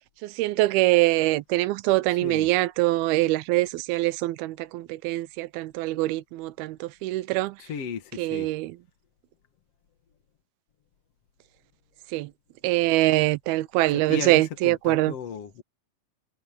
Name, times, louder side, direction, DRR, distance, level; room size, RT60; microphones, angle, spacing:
voice 1, 0.2-7.6 8.2-8.7 12.1-12.3 12.6-15.1, right 18 dB, 85° right, 2.6 m, -24 dB
voice 2, 2.1-2.5 7.6-8.5 13.9-15.6, left 7 dB, 50° left, 2.1 m, -35 dB
omnidirectional pair, 4.3 m